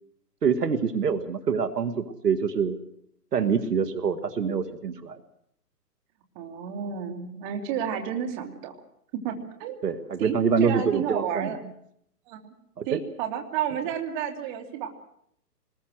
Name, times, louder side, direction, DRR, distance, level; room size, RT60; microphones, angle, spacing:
voice 1, 0.4-2.8 3.3-5.2 9.8-11.5 12.8-13.0, right 6 dB, 75° right, 10 dB, 2.1 m, -25 dB
voice 2, 6.3-8.7 9.1-9.8 10.2-10.3 10.6-11.6 12.3-12.5 12.9-14.9, right 8 dB, 30° right, 4 dB, 2.8 m, -31 dB
25.0 x 20.5 x 6.4 m, 0.71 s
hypercardioid pair, 140°, 48 cm